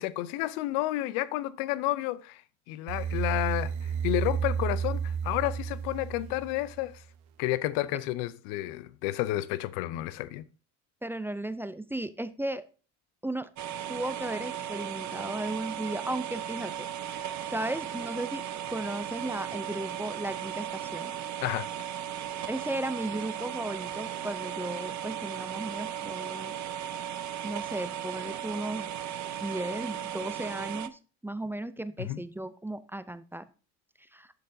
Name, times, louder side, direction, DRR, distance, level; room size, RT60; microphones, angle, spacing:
voice 1, 0.0-2.4 2.7-7.0 7.4-10.4 21.4-21.7 32.1-32.2, left 16 dB, 75° left, 0.7 m, -31 dB
sound 1, 2.9-7.0, right 7 dB, 85° right, 0.9 m, -32 dB
voice 2, 11.0-12.6 13.2-13.5 13.9-21.1 22.5-26.5 27.4-28.9 29.4-33.4 34.1-34.3, right 1 dB, 5° right, 0.5 m, -35 dB
sound 2, 13.6-30.9, right 10 dB, 45° right, 0.7 m, -36 dB
12.0 x 6.6 x 2.7 m
supercardioid pair, 90°, 41 cm